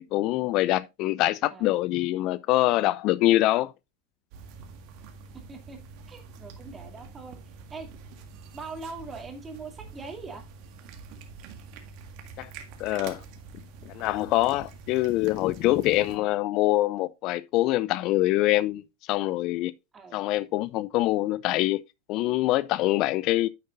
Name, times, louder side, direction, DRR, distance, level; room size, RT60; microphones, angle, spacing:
voice 1, 0.0-3.7 12.4-12.5 12.8-13.2 13.9-18.8 19.1-19.7 20.1-21.8 22.1-23.5, left 16 dB, 50° left, 0.4 m, -24 dB
sound 1, 4.3-16.2, right 5 dB, 55° right, 1.7 m, -46 dB
voice 2, 5.3-5.8 6.1-7.4 7.7-7.9 8.5-10.4 16.1-16.3 19.9-20.2, right 4 dB, 20° right, 2.6 m, -41 dB
9.6 x 8.1 x 2.5 m
hypercardioid pair, 95°, 0 cm